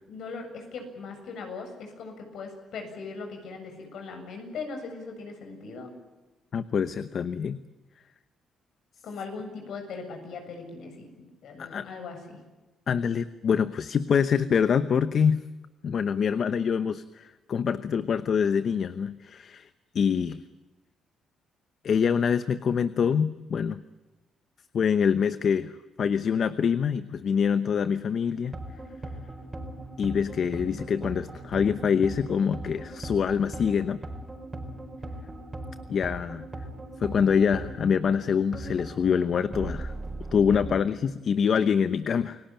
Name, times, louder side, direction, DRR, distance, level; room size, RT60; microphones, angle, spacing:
voice 1, 0.1-5.9 9.0-12.4, left 4 dB, 75° left, 5 dB, 7.4 m, -39 dB
voice 2, 6.5-7.6 11.6-11.9 12.9-15.4 15.8-19.7 19.9-20.4 21.8-23.8 24.7-25.7 26.0-28.5 30.0-34.0 35.9-36.5 37.0-39.9 40.3-42.4, left 7 dB, 55° left, 13 dB, 0.9 m, -25 dB
sound 1, 28.4-40.7, right 2 dB, 25° right, 4.8 m, -39 dB
28.5 x 18.0 x 9.0 m, 1.2 s
cardioid pair, 90°, 0 cm